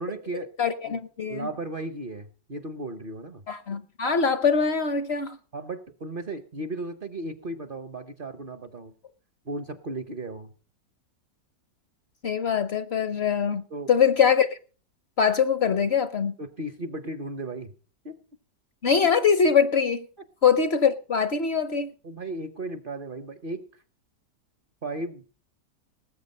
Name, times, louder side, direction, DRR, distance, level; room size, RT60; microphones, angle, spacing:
voice 1, 0.0-0.5 0.9-1.0 1.3-3.4 5.5-8.9 9.5-10.5 13.7-13.9 16.4-17.7 18.0-18.2 22.0-23.6 24.8-25.3, right 2 dB, 50° right, 0.7 m, -35 dB
voice 2, 0.6-1.5 3.5-5.4 12.2-13.6 13.9-14.6 15.2-16.3 18.8-20.0 20.4-21.9, left 6 dB, 55° left, 0.7 m, -23 dB
19.5 x 8.1 x 5.4 m
omnidirectional pair, 1.8 m